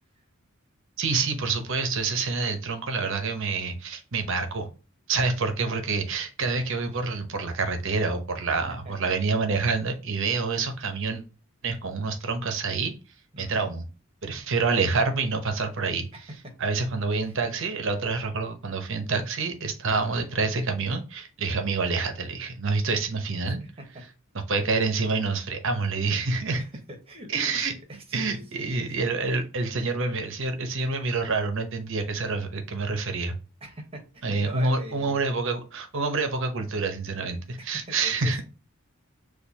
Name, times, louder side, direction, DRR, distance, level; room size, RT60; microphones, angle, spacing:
voice 1, 1.0-4.7 5.1-11.2 11.6-12.9 13.4-13.9 14.2-16.1 16.6-23.6 24.5-26.6 27.3-27.7 28.1-33.4 34.2-38.4, right 4 dB, 65° right, 6 dB, 0.8 m, -27 dB
voice 2, 13.3-13.8 16.1-16.2 17.2-17.4 19.9-20.3 23.4-24.0 24.6-24.7 26.6-26.7 27.1-29.0 29.3-29.4 33.6-35.3 37.7-38.4, equal, 30° right, 3 dB, 1.2 m, -43 dB
6.6 x 2.6 x 2.8 m, 0.32 s
head